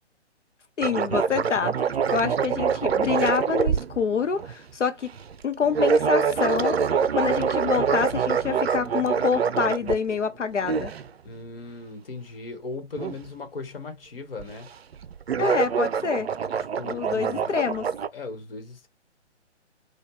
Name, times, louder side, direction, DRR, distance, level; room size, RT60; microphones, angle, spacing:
voice 1, 0.8-5.1 5.4-6.8 7.1-10.9 15.4-16.3 16.9-17.9, left 6 dB, 80° left, 0.6 m, -26 dB
sound 1, 0.8-4.5 5.2-5.3 5.7-10.2 10.6-11.1 13.0-13.2 14.4-14.7 14.9-18.1, right 6 dB, 60° right, 0.5 m, -25 dB
voice 2, 11.2-14.7 16.7-17.5 18.1-18.9, left 3 dB, 50° left, 1.3 m, -38 dB
4.3 x 2.3 x 3.1 m
figure-of-eight pair, 135°, 36 cm